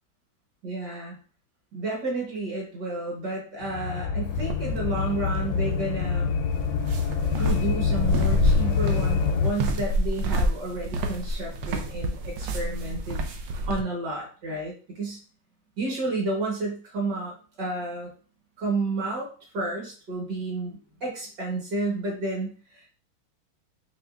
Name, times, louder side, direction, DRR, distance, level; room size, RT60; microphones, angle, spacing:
voice 1, 0.6-1.2 1.7-6.3 7.3-13.3 13.7-15.2 15.8-18.1 18.6-22.9, right 2 dB, 55° right, -1 dB, 1.5 m, -31 dB
sound 1, 3.6-9.5, left 6 dB, 75° left, 1.2 m, -25 dB
sound 2, 4.3-13.8, right 1 dB, 85° right, 0.9 m, -29 dB
5.0 x 3.0 x 2.3 m, 0.39 s
omnidirectional pair, 2.4 m